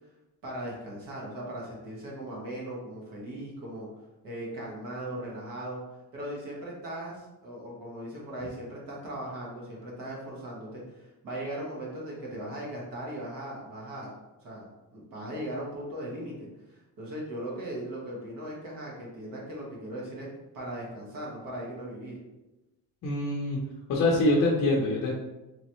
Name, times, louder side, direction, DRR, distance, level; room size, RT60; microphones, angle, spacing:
voice 1, 0.4-3.9 4.2-5.8 6.1-14.1 14.4-20.3 20.5-22.2, right 1 dB, 65° right, -4 dB, 1.4 m, -38 dB
voice 2, 23.0-23.6 23.9-25.1, left 2 dB, 45° left, -2 dB, 0.6 m, -24 dB
3.9 x 3.1 x 3.0 m, 1.0 s
cardioid pair, 180°, 36 cm